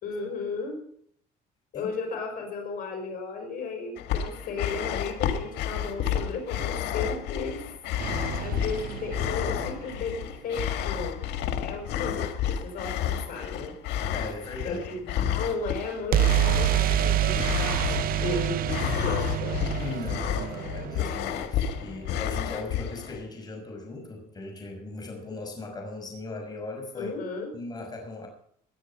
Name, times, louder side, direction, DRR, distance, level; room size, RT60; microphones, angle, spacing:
voice 1, 0.0-0.8 1.7-7.6 8.4-11.2 11.6-13.7 14.6-19.6 27.0-27.5, left 4 dB, 60° left, 3 dB, 5.6 m, -34 dB
sound 1, 4.0-23.2, left 9 dB, 80° left, 1.9 m, -31 dB
sound 2, 8.0-10.0 16.1-21.9, right 14 dB, 60° right, 0.6 m, -27 dB
voice 2, 14.1-15.0 19.8-27.1 27.5-28.3, left 2 dB, 25° left, 1 dB, 5.9 m, -38 dB
19.5 x 10.5 x 5.7 m, 0.65 s
cardioid pair, 110°, 17 cm